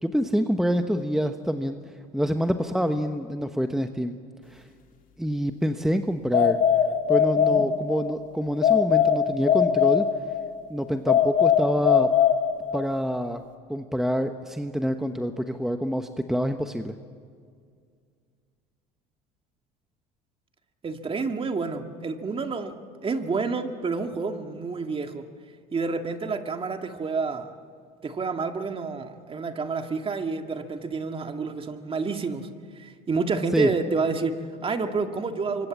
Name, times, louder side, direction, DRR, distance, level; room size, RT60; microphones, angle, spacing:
voice 1, 0.0-1.8 2.1-4.1 4.5-4.7 5.2-6.6 7.1-10.1 10.7-12.1 12.7-13.4 13.7-16.9 33.5-33.7, equal, ahead, 7 dB, 1.1 m, -26 dB
sound 1, 6.3-8.1 8.6-10.5 11.1-12.9, left 8 dB, 45° left, 2.3 m, -21 dB
voice 2, 20.8-22.8 23.0-25.3 25.7-27.5 28.0-32.5 32.8-35.7, right 4 dB, 30° right, 6 dB, 2.1 m, -29 dB
24.5 x 24.5 x 7.5 m, 2.1 s
supercardioid pair, 90°, 19 cm